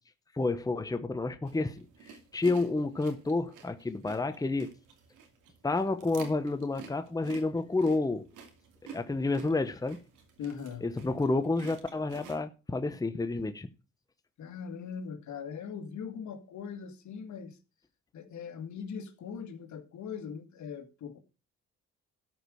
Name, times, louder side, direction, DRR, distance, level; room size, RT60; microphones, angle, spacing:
voice 1, 0.3-4.7 5.6-8.3 8.9-10.0 10.8-13.7, left 3 dB, 10° left, 1.0 m, -30 dB
sound 1, 1.4-12.4, right 6 dB, 85° right, 2.5 m, -51 dB
voice 2, 10.4-10.9 14.4-17.6 18.1-21.2, left 6 dB, 70° left, 1.9 m, -40 dB
13.0 x 5.2 x 6.3 m
cardioid pair, 90°, 30 cm